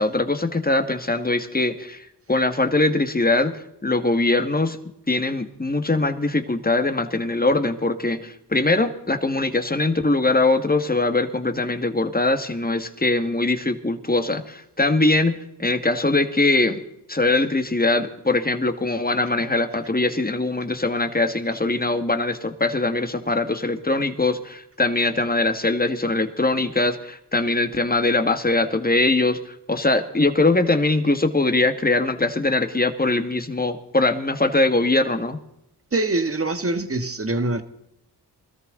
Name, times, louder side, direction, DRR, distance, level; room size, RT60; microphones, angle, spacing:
voice 1, 0.0-4.8 5.1-16.8 17.1-35.4, left 2 dB, 20° left, 8 dB, 1.9 m, -22 dB
voice 2, 35.9-37.6, right 2 dB, 35° right, 9 dB, 1.7 m, -24 dB
21.0 x 13.5 x 4.0 m, 0.79 s
cardioid pair, 50°, 41 cm